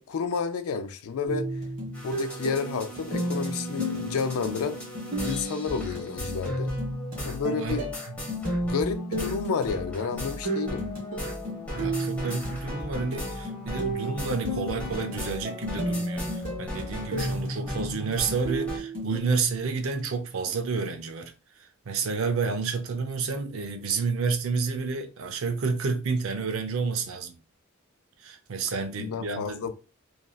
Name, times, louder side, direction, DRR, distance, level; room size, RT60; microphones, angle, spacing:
voice 1, 0.0-1.5 2.0-4.8 5.2-6.7 7.2-7.8 8.6-10.9 29.0-29.7, left 5 dB, 85° left, 0.4 m, -30 dB
sound 1, 1.3-19.2, equal, 40° right, 1.2 m, -33 dB
sound 2, 1.9-18.8, equal, 5° left, 0.9 m, -38 dB
voice 2, 7.5-7.9 11.7-27.4 28.2-29.6, right 4 dB, 70° right, 0.5 m, -30 dB
3.0 x 2.5 x 2.3 m
head